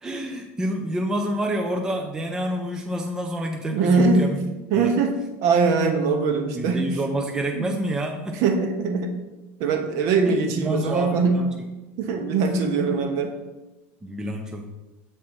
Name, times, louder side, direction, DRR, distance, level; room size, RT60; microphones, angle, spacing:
voice 1, 0.0-4.4 4.7-4.9 6.5-8.4 10.3-11.5 14.0-14.7, right 1 dB, 10° right, 3 dB, 0.5 m, -28 dB
voice 2, 3.7-4.3 4.7-6.8 7.5-7.8 8.4-9.2 9.6-11.4 12.0-13.3, right 4 dB, 55° right, 5 dB, 0.9 m, -22 dB
7.3 x 4.4 x 4.4 m, 1.1 s
supercardioid pair, 155°, 6 cm